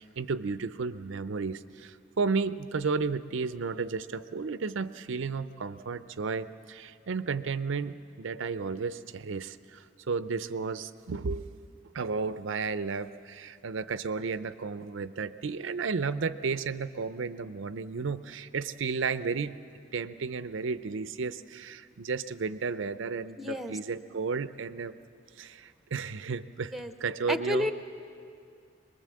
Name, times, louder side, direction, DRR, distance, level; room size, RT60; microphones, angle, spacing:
voice 1, 0.0-11.4 11.9-19.6 19.9-25.0 25.4-26.7 27.0-27.7, right 4 dB, 65° right, 14 dB, 0.5 m, -33 dB
voice 2, 23.4-23.8 26.7-26.9 27.3-27.7, left 1 dB, ahead, 9 dB, 0.7 m, -31 dB
23.5 x 21.0 x 7.6 m, 2.4 s
head